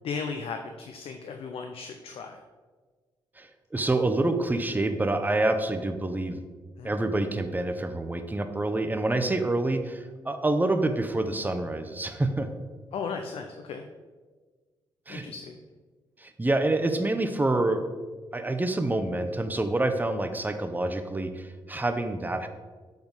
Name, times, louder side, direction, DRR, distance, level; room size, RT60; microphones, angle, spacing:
voice 1, 0.0-2.4 6.8-6.9 12.9-13.8 15.1-15.6, left 5 dB, 70° left, 5 dB, 0.6 m, -36 dB
voice 2, 3.7-6.4 6.8-12.5 15.1-15.2 16.2-17.9 18.3-22.5, right 2 dB, 15° right, 7 dB, 0.8 m, -27 dB
7.0 x 3.9 x 5.5 m, 1.4 s
supercardioid pair, 45°, 10 cm